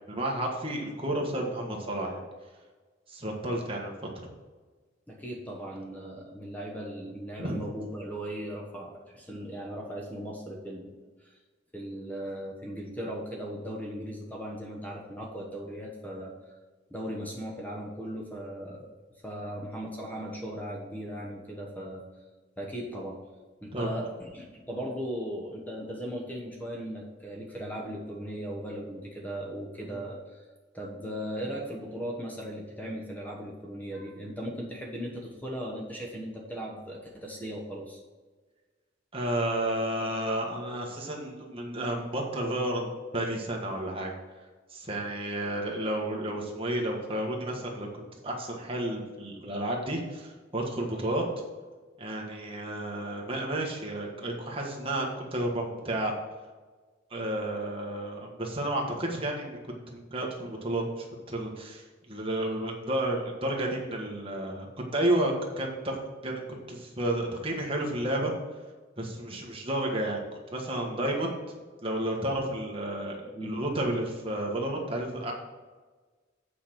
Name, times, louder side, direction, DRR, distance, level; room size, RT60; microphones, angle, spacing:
voice 1, 0.1-2.2 3.1-4.1 7.4-7.5 23.7-23.9 29.9-30.0 39.1-44.1 44.7-51.2 52.0-56.1 57.1-59.6 59.9-66.0 66.2-68.3 69.0-71.4 71.8-73.2 73.4-75.3, right 1 dB, 30° right, -1 dB, 1.5 m, -31 dB
voice 2, 5.1-10.9 11.2-11.4 11.7-16.3 16.9-18.9 19.2-22.0 22.6-23.2 23.6-30.4 30.7-38.0 73.3-73.6, equal, 10° left, -1 dB, 1.2 m, -38 dB
8.6 x 5.1 x 6.1 m, 1.3 s
head